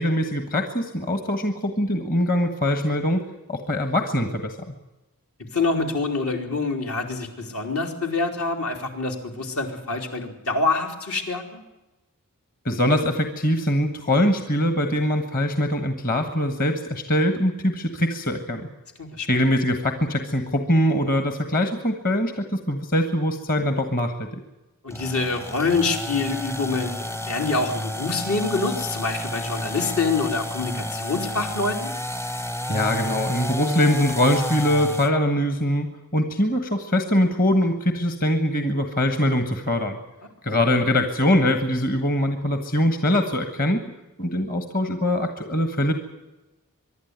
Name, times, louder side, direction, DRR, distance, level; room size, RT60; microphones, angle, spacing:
voice 1, 0.0-3.2 3.5-4.7 12.6-18.7 19.3-24.4 32.7-35.9 36.1-40.0 40.4-43.8 44.2-45.9, left 1 dB, 40° left, 7 dB, 1.5 m, -22 dB
voice 2, 5.5-11.6 19.0-19.3 24.8-31.9 40.5-40.6, left 3 dB, 75° left, 3 dB, 3.5 m, -26 dB
sound 1, 24.9-35.2, equal, 10° left, 0.7 m, -31 dB
24.5 x 11.5 x 9.5 m, 1.0 s
head